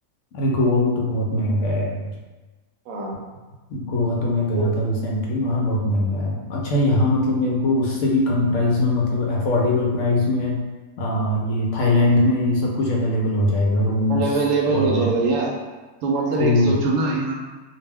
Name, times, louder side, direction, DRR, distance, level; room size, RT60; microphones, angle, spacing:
voice 1, 0.3-2.1 3.7-10.6 11.0-14.2 14.7-15.1 16.4-16.8, left 1 dB, 70° left, -2 dB, 0.9 m, -21 dB
voice 2, 14.1-15.5 16.0-17.5, right 3 dB, 75° right, -1 dB, 0.9 m, -22 dB
2.5 x 2.2 x 3.3 m, 1.2 s
omnidirectional pair, 1.4 m